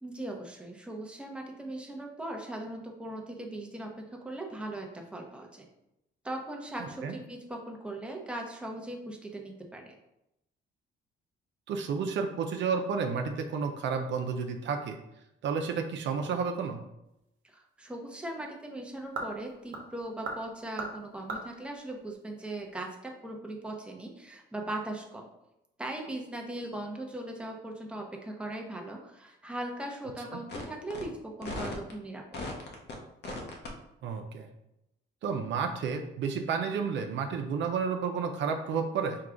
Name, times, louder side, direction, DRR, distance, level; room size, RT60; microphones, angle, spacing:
voice 1, 0.0-5.6 6.2-9.9 17.4-25.3 25.8-32.2, right 1 dB, 5° right, 1 dB, 0.8 m, -39 dB
voice 2, 11.7-15.0 15.4-16.8 34.0-34.5 35.2-39.2, right 5 dB, 70° right, 4 dB, 0.5 m, -31 dB
sound 1, 17.0-22.9, right 3 dB, 85° right, 0.9 m, -43 dB
sound 2, 30.5-30.6 30.9-31.0 31.4-31.9 32.3-32.9 33.2-33.7, left 2 dB, 60° left, 0.9 m, -36 dB
4.6 x 2.3 x 3.7 m, 0.86 s
cardioid pair, 90°, 20 cm